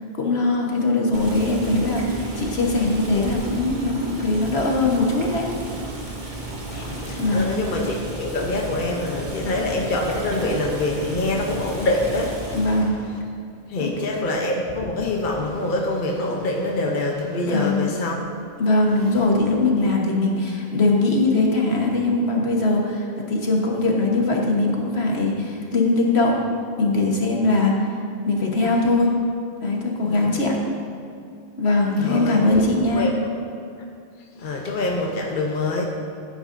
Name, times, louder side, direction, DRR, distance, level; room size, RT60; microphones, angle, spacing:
voice 1, 0.2-5.5 7.2-7.5 12.5-13.0 13.8-13.9 17.4-17.9 18.6-26.4 26.8-27.7 28.2-29.1 29.6-30.6 31.6-33.1, left 2 dB, 75° left, -1 dB, 1.6 m, -21 dB
Boiling, 1.1-12.9, right 2 dB, 45° right, 1.7 m, -33 dB
voice 2, 6.5-13.2 13.7-18.3 30.0-30.3 32.0-32.7 32.9-33.3 34.4-35.8, left 2 dB, 50° left, 0 dB, 1.0 m, -25 dB
15.0 x 9.1 x 2.7 m, 2.4 s
omnidirectional pair, 1.1 m